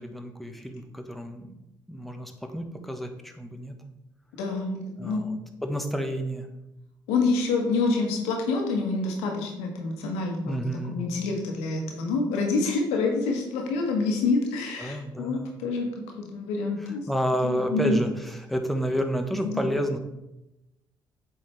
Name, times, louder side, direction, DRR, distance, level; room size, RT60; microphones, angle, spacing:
voice 1, 0.0-1.5 1.9-3.7 5.0-6.5 10.4-11.0 14.8-15.5 16.8-20.0, equal, ahead, 4 dB, 1.2 m, -30 dB
voice 2, 4.4-5.2 7.1-10.6 10.9-15.9 16.2-17.0 17.4-18.0 19.4-19.6, left 3 dB, 75° left, 2 dB, 1.3 m, -27 dB
7.9 x 4.6 x 3.3 m, 0.91 s
hypercardioid pair, 45°, 11 cm